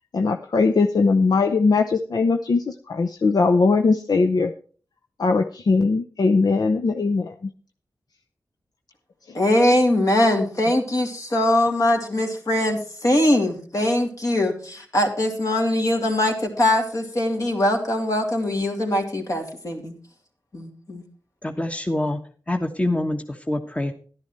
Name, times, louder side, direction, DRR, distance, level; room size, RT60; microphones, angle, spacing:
voice 1, 0.1-4.5 5.2-7.3, left 4 dB, 70° left, 5 dB, 0.7 m, -20 dB
voice 2, 9.3-19.9 20.5-21.0, left 1 dB, 55° left, 2 dB, 2.8 m, -22 dB
voice 3, 21.4-22.2 22.5-23.9, left 1 dB, 20° left, 5 dB, 1.3 m, -25 dB
11.5 x 10.5 x 4.4 m, 0.42 s
cardioid pair, 55°, 7 cm